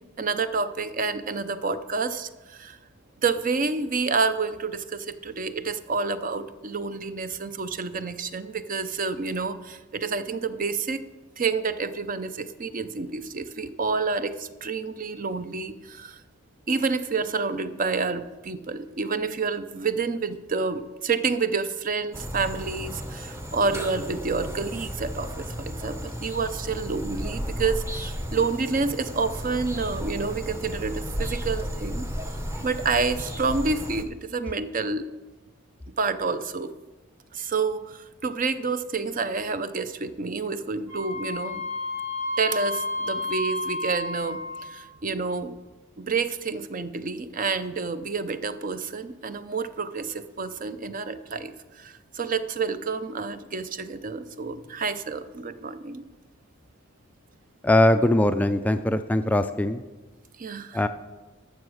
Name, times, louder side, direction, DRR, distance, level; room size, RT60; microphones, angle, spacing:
voice 1, 0.2-2.8 3.2-11.0 11.4-16.2 16.7-32.1 32.6-35.0 36.0-36.7 37.3-41.6 42.4-45.5 46.0-56.0 60.4-60.9, right 4 dB, 40° right, 12 dB, 0.6 m, -29 dB
sound 1, 22.1-34.0, equal, 15° right, 0.8 m, -34 dB
Wind instrument woodwind instrument, 40.9-44.8, left 2 dB, 75° right, 3.1 m, -31 dB
voice 2, 57.6-59.8 60.7-60.9, left 1 dB, 5° left, 9 dB, 0.3 m, -21 dB
12.5 x 7.1 x 6.3 m, 1.2 s
head